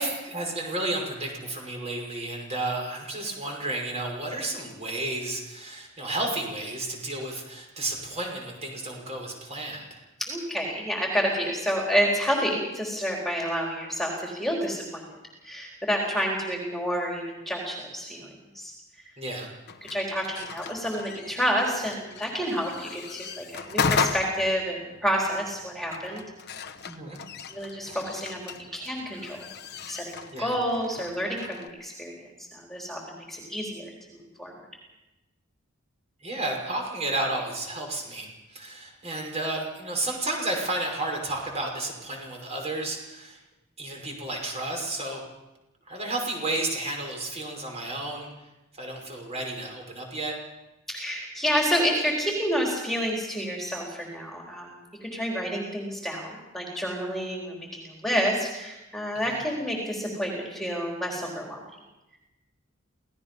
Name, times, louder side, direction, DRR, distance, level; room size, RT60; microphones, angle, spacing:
voice 1, 0.0-10.0 19.2-19.5 26.9-27.2 30.3-30.5 36.2-43.4 43.8-45.2 45.9-48.3 48.8-50.4 59.3-59.4, right 2 dB, 35° right, 1 dB, 5.8 m, -32 dB
voice 2, 10.3-15.1 15.4-18.7 19.9-26.2 27.5-29.5 29.9-34.5 50.9-61.6, equal, ahead, -2 dB, 4.1 m, -29 dB
sound 1, 19.7-31.7, left 5 dB, 55° left, 1.1 m, -35 dB
27.5 x 18.0 x 5.5 m, 0.99 s
head